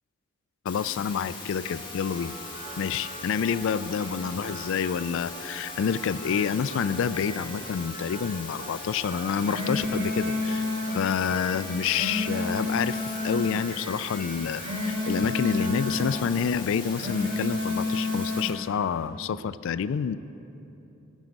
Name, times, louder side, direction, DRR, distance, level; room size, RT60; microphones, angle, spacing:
voice 1, 0.7-2.3 2.8-10.7 10.9-20.2, left 7 dB, 65° left, 16 dB, 0.3 m, -28 dB
sound 1, 0.7-18.5, left 4 dB, 25° left, 2.0 m, -41 dB
sound 2, 1.6-17.7, right 1 dB, 30° right, 2.1 m, -43 dB
sound 3, 9.4-11.0 11.7-13.5 14.3-16.1 16.8-18.5, left 2 dB, 50° right, 2.0 m, -30 dB
13.5 x 9.8 x 5.3 m, 3.0 s
head